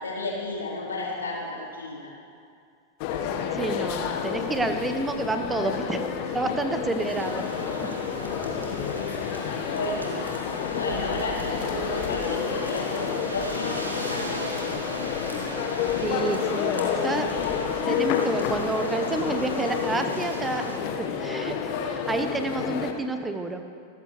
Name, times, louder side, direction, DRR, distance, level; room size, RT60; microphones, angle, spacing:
voice 1, 0.0-2.1 7.8-7.9 9.7-10.2 10.7-14.5, left 2 dB, 70° left, -4 dB, 4.0 m, -32 dB
sound 1, 3.0-22.9, left 7 dB, 45° left, 1.4 m, -30 dB
voice 2, 3.5-7.4 16.0-17.5 17.8-20.7 21.0-23.6, right 3 dB, 10° right, 7 dB, 1.2 m, -29 dB
sound 2, 7.1-20.8, equal, 80° right, 2.4 m, -38 dB
27.0 x 14.0 x 3.3 m, 2.3 s
figure-of-eight pair, 90°, 0 cm